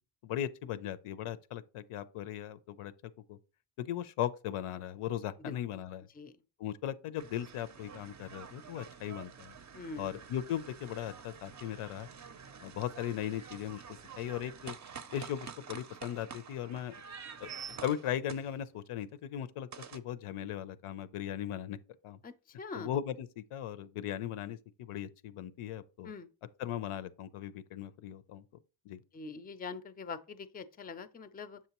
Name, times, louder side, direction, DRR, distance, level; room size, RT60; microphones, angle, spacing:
voice 1, 0.2-2.9 3.3-3.4 3.8-6.1 6.6-9.5 10.0-12.1 12.6-13.8 14.2-14.7 15.1-16.9 17.4-17.5 17.8-21.8 22.0-22.2 22.7-26.1 26.6-28.4 28.9-29.0, left 11 dB, 85° left, 0.6 m, -38 dB
Battle Firefight Scene, 7.2-18.9 19.7-20.0, right 6 dB, 35° right, 0.5 m, -48 dB
voice 2, 9.7-10.2 22.2-22.9 26.0-26.3 29.1-31.6, left 4 dB, 20° left, 0.4 m, -43 dB
7.4 x 5.5 x 2.9 m
wide cardioid pair, 110°, 50 cm